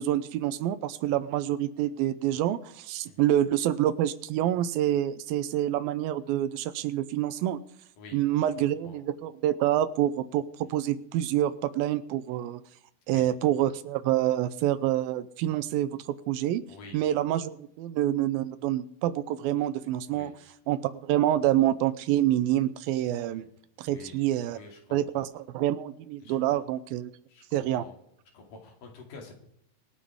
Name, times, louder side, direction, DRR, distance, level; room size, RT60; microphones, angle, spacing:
voice 1, 0.0-7.6 8.1-10.4 10.7-12.6 13.1-15.9 16.3-16.6 16.9-20.3 20.7-23.5 23.8-24.6 24.9-27.1 27.5-27.8, right 12 dB, 80° right, 15 dB, 2.5 m, -27 dB
voice 2, 8.0-9.0 10.6-10.7 13.1-13.3 16.7-17.1 20.1-20.5 23.3-23.5 23.9-25.3 26.2-26.6 27.3-28.0 28.3-29.3, left 3 dB, 65° left, 1 dB, 4.0 m, -49 dB
25.0 x 8.9 x 3.6 m, 0.73 s
omnidirectional pair, 4.2 m